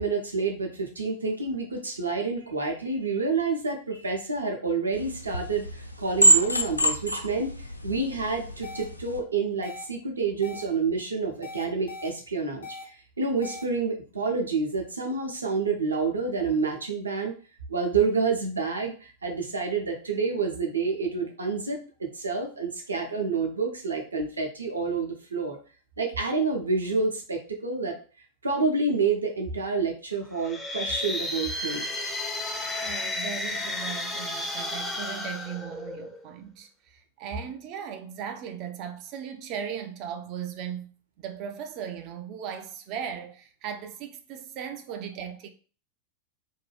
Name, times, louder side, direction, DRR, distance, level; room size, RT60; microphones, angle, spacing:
voice 1, 0.0-17.4 17.7-25.6 26.0-28.0 28.4-31.9, right 4 dB, 75° right, 0.7 m, -28 dB
sound 1, 4.9-9.2, right 2 dB, 85° left, 0.3 m, -26 dB
sound 2, 8.6-8.8 9.6-9.8 10.4-10.6 11.4-12.1 12.6-12.8 13.4-13.6, left 4 dB, 70° left, 0.8 m, -40 dB
sound 3, 30.3-36.3, left 2 dB, 10° left, 0.5 m, -32 dB
voice 2, 32.8-45.5, right 8 dB, 40° right, 0.4 m, -37 dB
2.6 x 2.2 x 3.2 m
figure-of-eight pair, 90°, 0 cm